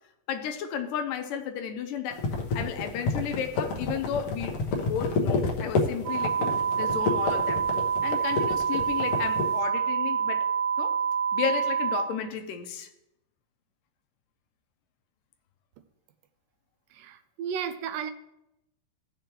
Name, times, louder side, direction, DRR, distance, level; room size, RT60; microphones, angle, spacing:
voice 1, 0.3-2.2 2.5-6.4 6.8-7.6 8.0-10.5 10.8-11.0 11.3-12.9, left 8 dB, 80° left, 7 dB, 2.3 m, -33 dB
sound 1, 2.1-9.5, left 3 dB, 60° left, 1.7 m, -29 dB
sound 2, 6.1-12.1, right 7 dB, 60° right, 2.5 m, -27 dB
voice 2, 16.9-18.1, right 7 dB, 80° right, 10 dB, 2.2 m, -34 dB
16.0 x 6.7 x 3.0 m, 0.85 s
omnidirectional pair, 3.9 m